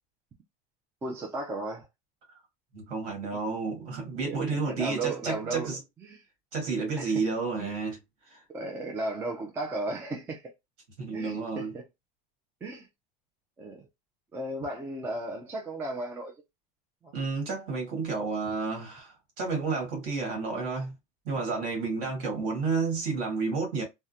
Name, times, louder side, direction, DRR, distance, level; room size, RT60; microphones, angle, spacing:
voice 1, 1.0-1.9 4.2-4.4 4.7-5.7 6.0-6.2 7.0-7.2 7.6-7.8 8.5-10.5 11.1-11.8 12.6-12.9 13.6-13.9 14.3-16.3 17.0-17.1 22.0-22.1, right 2 dB, 10° right, 0.4 m, -35 dB
voice 2, 2.7-5.8 6.5-8.0 8.3-8.4 11.0-11.7 17.1-20.9 21.3-23.8, right 4 dB, 50° right, 1.7 m, -31 dB
3.5 x 2.1 x 2.7 m
cardioid pair, 180°, 19 cm